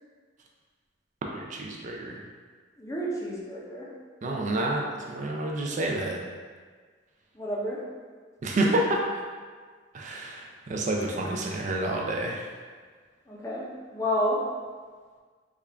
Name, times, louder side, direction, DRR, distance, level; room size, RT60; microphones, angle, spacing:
voice 1, 1.3-2.2 4.2-6.2 8.4-9.2 9.9-12.5, right 1 dB, 40° right, 0 dB, 0.3 m, -29 dB
voice 2, 2.8-3.9 7.3-7.8 13.3-14.4, equal, 15° left, -4 dB, 0.5 m, -30 dB
3.6 x 2.3 x 3.3 m, 1.6 s
head